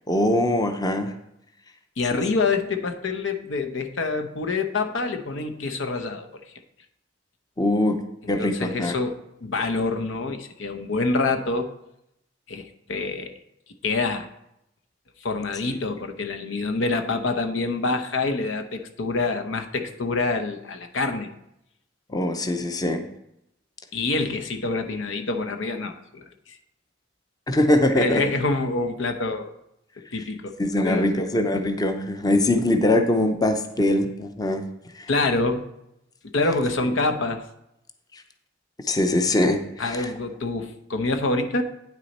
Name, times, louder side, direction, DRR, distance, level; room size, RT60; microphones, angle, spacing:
voice 1, 0.1-1.1 2.1-2.2 7.6-8.0 8.3-8.9 22.1-23.0 27.5-28.2 30.6-34.6 35.0-35.1 38.9-40.1, left 1 dB, 20° left, 7 dB, 0.6 m, -22 dB
voice 2, 2.0-6.3 8.2-11.7 12.5-13.3 13.8-14.3 15.2-21.3 23.9-26.6 27.9-29.5 30.1-31.1 35.1-35.7 36.3-37.4 39.8-41.6, left 3 dB, 85° left, 6 dB, 0.8 m, -26 dB
9.1 x 6.2 x 4.1 m, 0.81 s
head